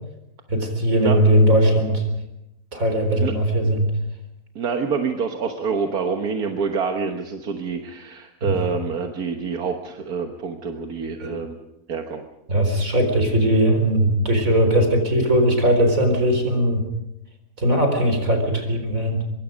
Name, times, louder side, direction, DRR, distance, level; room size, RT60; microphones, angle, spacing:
voice 1, 0.5-2.0 2.7-3.9 8.4-8.7 11.2-11.4 12.5-16.8 17.6-19.2, right 1 dB, 60° right, 5 dB, 4.6 m, -19 dB
voice 2, 4.5-11.6 11.9-12.2, right 5 dB, 85° right, 4 dB, 1.8 m, -27 dB
25.0 x 23.0 x 5.2 m, 0.88 s
omnidirectional pair, 1.6 m